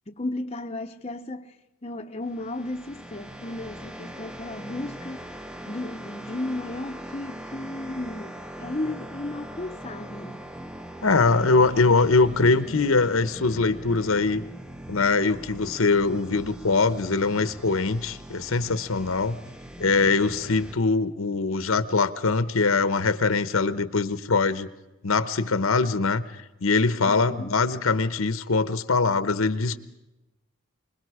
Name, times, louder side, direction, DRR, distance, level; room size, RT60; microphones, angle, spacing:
voice 1, 0.1-1.5 1.8-5.3 5.7-10.5 27.0-27.5, left 2 dB, 30° left, 0.8 m, -34 dB
sound 1, 2.2-20.7, right 1 dB, 5° right, 0.7 m, -41 dB
voice 2, 11.0-14.4 14.9-19.4 19.8-24.7 25.0-26.2 26.6-29.8, left 3 dB, 75° left, 1.0 m, -22 dB
25.5 x 21.0 x 4.9 m
head